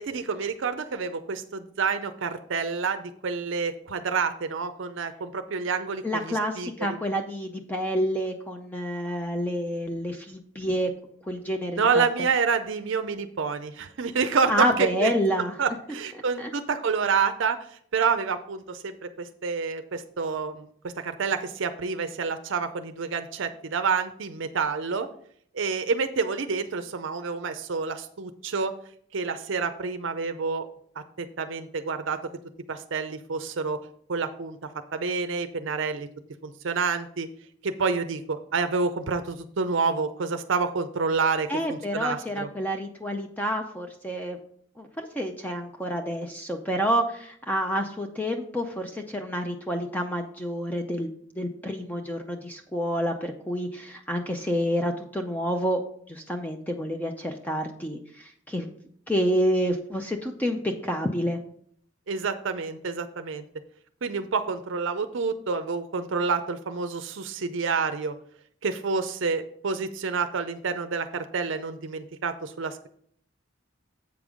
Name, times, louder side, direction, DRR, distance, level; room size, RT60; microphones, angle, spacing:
voice 1, 0.0-6.9 11.8-15.1 15.6-17.6 17.9-25.1 25.5-28.7 29.1-30.7 31.2-32.2 32.7-33.8 34.1-34.6 34.9-36.1 36.4-37.3 37.6-42.5 62.1-63.4 64.0-68.1 68.6-72.9, right 5 dB, 65° right, 9 dB, 0.5 m, -28 dB
voice 2, 6.0-10.9 11.2-12.0 14.5-15.5 16.4-16.5 41.5-44.4 44.8-55.8 56.1-58.7 59.1-61.4, equal, 10° left, 4 dB, 0.5 m, -28 dB
8.0 x 5.3 x 4.9 m, 0.62 s
head